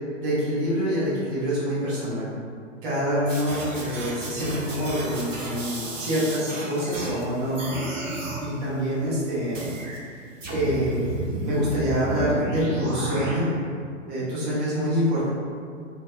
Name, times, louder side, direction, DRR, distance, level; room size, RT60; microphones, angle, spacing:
voice 1, 0.1-2.3 2.8-7.8 8.1-9.8 10.5-13.5 14.1-15.3, equal, 35° right, -10 dB, 1.3 m, -26 dB
sound 1, 3.3-7.2 7.5-8.4 9.5-10.0 10.4-13.3, right 2 dB, 75° right, 0.7 m, -32 dB
3.2 x 2.7 x 2.3 m, 2.2 s
figure-of-eight pair, 100°, 39 cm